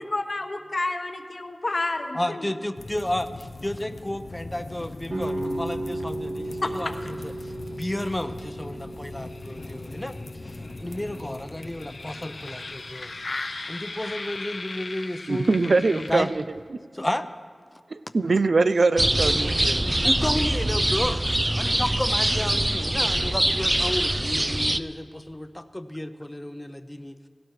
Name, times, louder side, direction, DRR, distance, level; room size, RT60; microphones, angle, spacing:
voice 1, 0.0-2.2 6.6-6.7, left 2 dB, 65° left, 5 dB, 1.1 m, -29 dB
voice 2, 2.1-10.2 10.4-13.4 13.7-16.3 16.9-17.3 20.0-27.2, left 1 dB, 20° left, 9 dB, 0.7 m, -32 dB
sound 1, 2.8-16.7, left 3 dB, 85° left, 0.6 m, -38 dB
sound 2, 5.1-10.9, right 1 dB, 70° right, 2.9 m, -35 dB
voice 3, 15.3-16.4 16.7-16.8 17.9-19.8, right 3 dB, 90° right, 12 dB, 0.4 m, -22 dB
sound 3, 19.0-24.8, right 1 dB, 30° right, 0.4 m, -23 dB
17.0 x 17.0 x 3.2 m, 2.1 s
wide cardioid pair, 50°, 0 cm